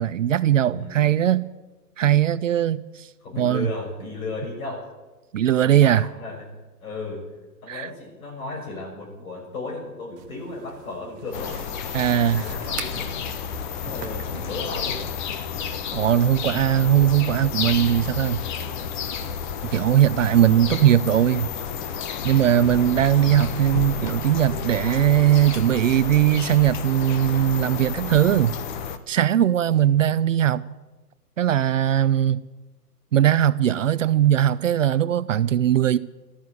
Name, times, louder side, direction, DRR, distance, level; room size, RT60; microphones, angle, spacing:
voice 1, 0.0-1.5 2.0-3.1 3.4-3.7 5.3-6.1 7.7-7.9 11.9-12.4 15.9-18.4 19.7-21.5 22.2-28.6 29.1-30.6 31.4-32.4 33.1-36.0, right 11 dB, 50° right, 0.6 m, -19 dB
voice 2, 0.7-1.1 3.2-4.9 5.5-6.5 6.8-7.3 7.6-11.6 12.1-13.2 13.8-15.1 16.6-16.8 22.7-22.9, left 3 dB, 60° left, 6.7 m, -35 dB
sound 1, 10.2-15.3, right 9 dB, 15° right, 0.8 m, -43 dB
sound 2, 11.3-29.0, left 7 dB, 30° left, 1.0 m, -31 dB
14.0 x 13.0 x 8.0 m
hypercardioid pair, 135°, 48 cm